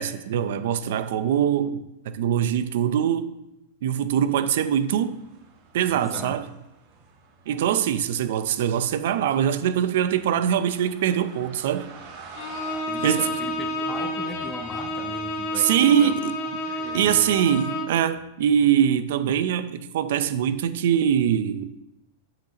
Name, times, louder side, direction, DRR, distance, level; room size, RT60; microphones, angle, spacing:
voice 1, 0.0-1.8 2.1-3.3 3.8-5.2 5.7-6.4 7.5-11.9 13.0-13.3 15.6-16.3 16.9-21.7, right 9 dB, 60° right, 0.6 m, -23 dB
sound 1, 4.1-12.8, right 5 dB, 40° right, 2.5 m, -49 dB
voice 2, 5.9-6.4 12.9-16.1 16.5-17.5, left 2 dB, 10° left, 0.6 m, -39 dB
Bowed string instrument, 12.3-18.0, left 1 dB, 40° left, 1.3 m, -30 dB
13.0 x 5.9 x 3.0 m
supercardioid pair, 165°, 0 cm